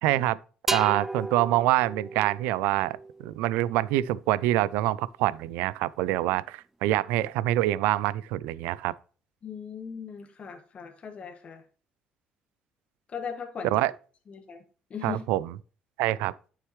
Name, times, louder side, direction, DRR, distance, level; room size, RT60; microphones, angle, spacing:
voice 1, 0.0-0.4 0.7-3.0 3.2-8.9 13.7-13.9 15.0-15.5 16.0-16.3, right 15 dB, 85° right, 0.4 m, -25 dB
sound 1, 0.7-4.3, right 2 dB, 10° right, 0.3 m, -36 dB
voice 2, 9.4-11.6 13.1-13.9 14.3-14.6 14.9-15.2, left 6 dB, 45° left, 1.6 m, -38 dB
9.3 x 6.6 x 3.1 m
supercardioid pair, 75°, 3 cm